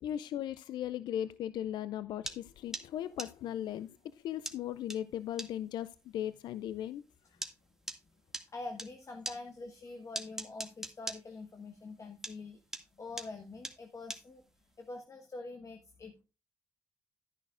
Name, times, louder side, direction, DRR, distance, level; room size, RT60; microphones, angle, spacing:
voice 1, 0.0-7.0, left 11 dB, 75° left, 15 dB, 0.4 m, -37 dB
sound 1, 2.3-8.9 9.3-12.0 12.2-14.9, right 1 dB, 5° right, 2.1 m, -41 dB
voice 2, 8.5-14.4 14.8-16.2, left 3 dB, 45° left, 5 dB, 1.3 m, -45 dB
12.0 x 10.0 x 2.5 m, 0.31 s
hypercardioid pair, 45°, 8 cm